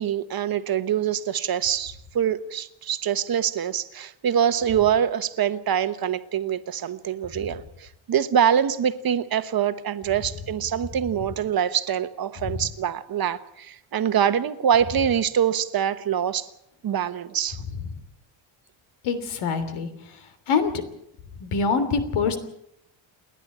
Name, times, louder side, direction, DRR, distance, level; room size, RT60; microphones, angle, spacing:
voice 1, 0.0-16.5 16.8-17.6, right 9 dB, 45° right, 12 dB, 1.2 m, -24 dB
voice 2, 19.0-19.9 20.5-20.7 21.4-22.4, left 5 dB, 85° left, 10 dB, 3.2 m, -24 dB
29.5 x 11.0 x 8.7 m, 0.77 s
cardioid pair, 145°, 48 cm